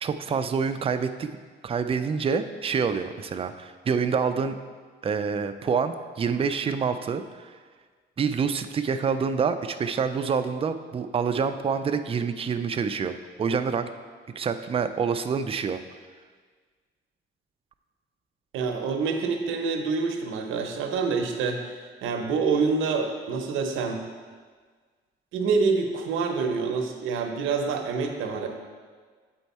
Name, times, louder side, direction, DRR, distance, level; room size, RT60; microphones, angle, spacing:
voice 1, 0.0-1.4 1.6-4.6 5.0-7.5 8.2-13.9 14.4-15.8, right 6 dB, 30° right, 8 dB, 0.4 m, -27 dB
voice 2, 18.5-21.7 22.0-24.0 25.3-28.5, right 4 dB, 90° right, 4 dB, 0.8 m, -26 dB
7.7 x 4.5 x 4.2 m, 1.5 s
cardioid pair, 90°, 20 cm